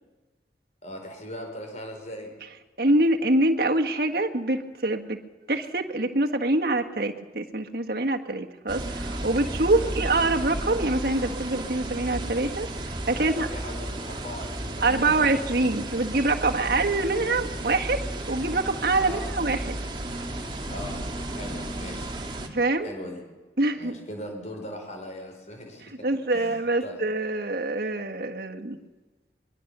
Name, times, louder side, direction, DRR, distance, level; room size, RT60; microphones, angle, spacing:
voice 1, 0.8-2.3 9.7-10.0 13.2-15.9 16.3-16.6 19.0-19.3 20.7-21.0 21.3-22.2 22.8-23.3 23.7-27.0, left 1 dB, 40° left, 3 dB, 4.4 m, -40 dB
voice 2, 2.8-5.2 5.5-13.5 14.8-19.8 22.5-22.9 23.6-24.0 26.0-28.8, right 2 dB, 55° right, 3 dB, 1.6 m, -25 dB
sound 1, 8.7-22.5, right 1 dB, 25° right, 2.2 m, -33 dB
23.0 x 23.0 x 6.8 m, 1.2 s
head